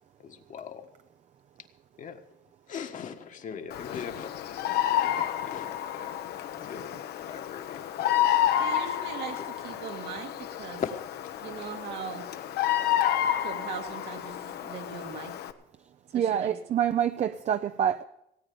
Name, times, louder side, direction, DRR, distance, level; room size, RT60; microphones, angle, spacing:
voice 1, 0.2-0.9 2.0-2.2 2.7-6.2 6.6-8.3 10.8-11.3 11.6-11.7, left 7 dB, 50° left, 1.5 m, -40 dB
Bird vocalization bird call bird song, 3.7-15.5, left 11 dB, 70° left, 1.0 m, -30 dB
voice 2, 8.6-10.8 11.4-12.3 13.4-15.3 16.1-16.5, right 7 dB, 80° right, 2.2 m, -40 dB
voice 3, 16.1-18.0, right 9 dB, 45° right, 0.6 m, -26 dB
17.5 x 9.0 x 6.9 m
cardioid pair, 110°, 17 cm